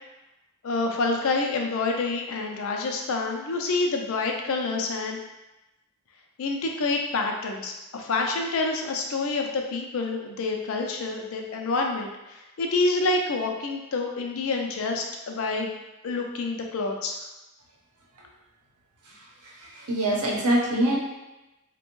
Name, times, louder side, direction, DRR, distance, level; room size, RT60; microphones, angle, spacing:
voice 1, 0.6-5.2 6.4-15.7 16.0-17.2, left 3 dB, 65° left, 2 dB, 0.4 m, -27 dB
voice 2, 19.7-21.0, right 1 dB, 85° right, -3 dB, 0.8 m, -23 dB
3.3 x 2.2 x 3.0 m, 0.99 s
head